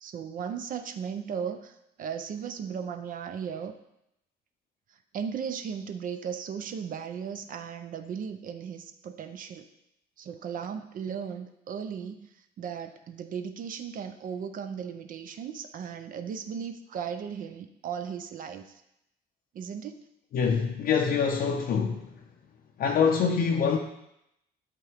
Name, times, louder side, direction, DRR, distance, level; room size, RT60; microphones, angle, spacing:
voice 1, 0.0-3.7 5.1-9.7 10.2-18.8 19.5-20.0, right 7 dB, 50° right, 8 dB, 0.5 m, -36 dB
voice 2, 20.3-22.1 22.8-23.8, left 6 dB, 55° left, 2 dB, 0.5 m, -25 dB
11.0 x 3.7 x 3.4 m, 0.82 s
cardioid pair, 145°, 18 cm